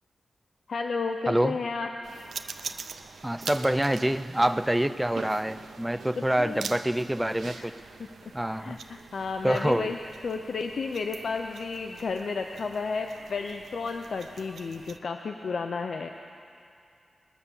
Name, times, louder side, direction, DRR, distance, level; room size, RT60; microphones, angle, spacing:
voice 1, 0.7-1.9 6.4-6.7 7.4-7.7 8.3-10.0 10.2-16.1, left 4 dB, 70° left, 5 dB, 0.6 m, -32 dB
voice 2, 1.3-1.6 3.2-7.7 8.3-8.8 9.4-9.9, right 1 dB, 10° right, 11 dB, 0.5 m, -26 dB
sound 1, 2.0-15.0, right 5 dB, 80° right, 0.5 m, -44 dB
20.5 x 6.9 x 7.0 m, 2.5 s
cardioid pair, 75°, 0 cm